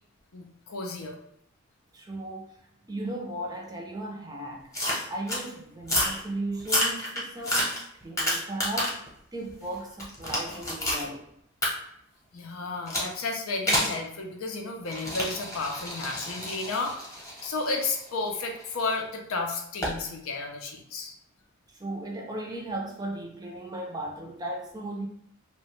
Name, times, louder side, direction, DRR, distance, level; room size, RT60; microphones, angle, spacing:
voice 1, 0.3-1.2 12.3-16.9 17.4-21.1, left 3 dB, 75° left, 0.5 m, -32 dB
voice 2, 1.9-2.6 2.9-4.7 5.1-11.3 21.7-25.1, right 1 dB, 20° right, 0.4 m, -36 dB
sound 1, 4.7-5.4 5.8-6.2 6.6-9.1 9.5-11.1 11.6-11.7 12.9-13.1 13.7-14.0 14.9-18.8 19.8-20.0, left 1 dB, 15° left, 0.9 m, -29 dB
2.9 x 2.1 x 3.1 m
head